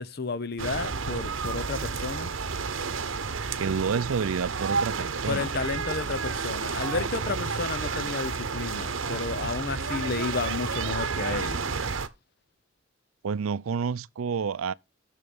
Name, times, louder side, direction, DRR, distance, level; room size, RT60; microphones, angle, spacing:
voice 1, 0.0-2.3 5.3-11.6, left 3 dB, 50° left, 0.7 m, -32 dB
sound 1, 0.6-12.1, right 5 dB, 70° right, 0.9 m, -31 dB
voice 2, 3.6-5.5 13.2-14.7, right 6 dB, 90° right, 0.5 m, -29 dB
7.0 x 6.7 x 5.3 m
head